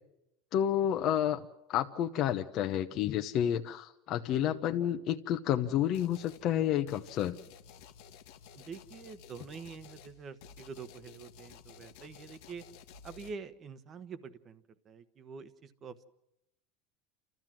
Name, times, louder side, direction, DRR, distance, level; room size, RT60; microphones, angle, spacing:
voice 1, 0.5-1.4 1.7-7.4, left 10 dB, 50° left, 5 dB, 0.9 m, -30 dB
sound 1, 5.9-6.5 6.9-13.3, left 7 dB, 75° left, 1.2 m, -53 dB
voice 2, 8.5-12.6 13.0-16.0, right 5 dB, 35° right, 12 dB, 1.2 m, -46 dB
29.5 x 13.5 x 7.5 m, 0.89 s
supercardioid pair, 120°, 0 cm